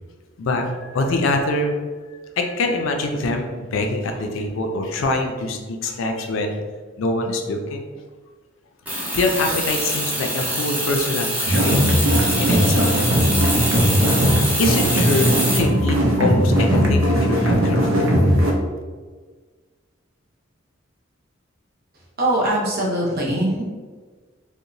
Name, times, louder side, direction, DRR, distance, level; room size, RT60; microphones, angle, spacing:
voice 1, 0.4-1.8 2.1-6.6 7.0-7.9 9.1-11.8 12.4-12.9 14.6-18.2, left 2 dB, 75° left, 3 dB, 0.4 m, -24 dB
sound 1, 8.9-15.6, equal, 10° right, 0.6 m, -24 dB
sound 2, 11.5-18.5, equal, 85° right, 0.5 m, -18 dB
voice 2, 22.2-23.6, right 1 dB, 50° right, -4 dB, 0.7 m, -21 dB
2.9 x 2.1 x 2.6 m, 1.4 s
head